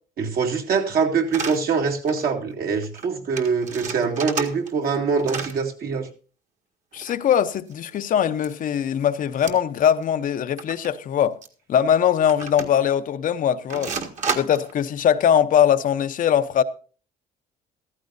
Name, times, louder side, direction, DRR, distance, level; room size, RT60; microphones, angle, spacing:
voice 1, 0.2-6.1, right 5 dB, 60° right, 2.6 m, -24 dB
sound 1, 1.3-1.6 2.1-2.3 2.5-2.6 2.8-3.1 3.4-4.9 5.2-5.6 6.9-8.0 8.4-8.5 9.4-9.8 10.0-10.1 10.6-10.9 11.4-11.5 12.3-12.9 13.7-14.7, right 5 dB, 45° right, 1.9 m, -31 dB
voice 2, 6.9-11.4 11.7-13.9 14.3-16.6, left 9 dB, 50° left, 0.8 m, -21 dB
14.5 x 14.0 x 2.6 m
cardioid pair, 110°, 17 cm